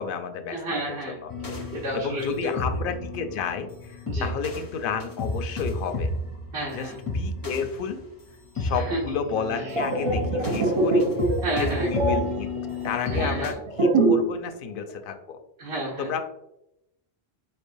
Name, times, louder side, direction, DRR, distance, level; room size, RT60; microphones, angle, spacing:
voice 1, 0.0-0.8 1.2-1.3 1.9-6.1 6.7-8.0 8.6-11.1 11.6-12.5 12.8-15.4 16.0-16.3, left 6 dB, 65° left, 8 dB, 0.7 m, -31 dB
voice 2, 0.5-2.6 4.1-4.3 6.5-7.0 8.7-9.0 9.6-9.7 11.4-11.9 13.1-13.5 15.6-16.1, right 1 dB, 65° right, -6 dB, 1.1 m, -31 dB
sound 1, 1.3-13.5, left 2 dB, 25° left, 0.5 m, -32 dB
sound 2, 9.6-14.4 14.6-14.9, right 2 dB, 35° right, 0.5 m, -24 dB
4.4 x 3.4 x 2.6 m, 0.83 s
omnidirectional pair, 1.1 m